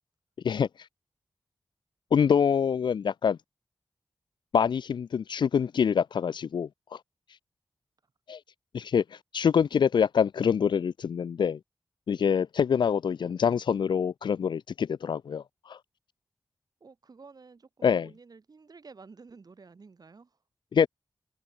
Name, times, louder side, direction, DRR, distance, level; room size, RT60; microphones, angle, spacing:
voice 1, 2.1-3.4 4.5-6.7 8.3-8.4 8.7-9.0 9.3-11.6 12.1-15.8 17.8-18.1 20.7-20.9, left 7 dB, 75° left, 0.5 m, -25 dB
voice 2, 16.8-20.4, right 4 dB, 55° right, 5.0 m, -51 dB
wide cardioid pair, 80°, 8 cm